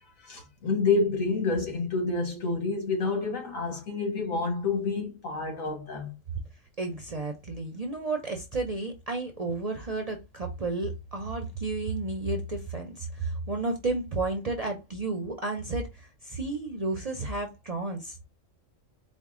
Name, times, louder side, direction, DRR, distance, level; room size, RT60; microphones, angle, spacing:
voice 1, 0.2-6.1, left 4 dB, 85° left, 1.9 m, -28 dB
voice 2, 6.8-18.2, right 3 dB, 45° right, 0.5 m, -32 dB
4.5 x 2.2 x 3.6 m
omnidirectional pair, 1.4 m